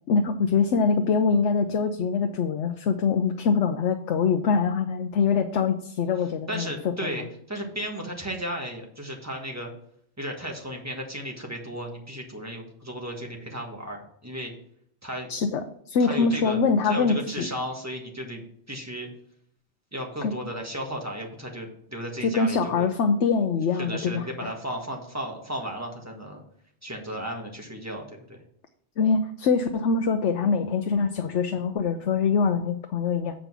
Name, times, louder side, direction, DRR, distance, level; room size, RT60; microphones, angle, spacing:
voice 1, 0.1-6.7 7.0-7.3 15.3-17.5 20.2-20.3 22.2-24.5 29.0-33.3, left 5 dB, 80° left, 6 dB, 1.0 m, -24 dB
voice 2, 6.5-9.7 10.2-14.5 15.0-15.3 16.0-16.6 16.8-19.1 19.9-22.9 23.8-26.4 26.8-28.4, equal, 15° right, 1 dB, 1.6 m, -34 dB
7.5 x 5.2 x 6.1 m, 0.67 s
omnidirectional pair, 1.2 m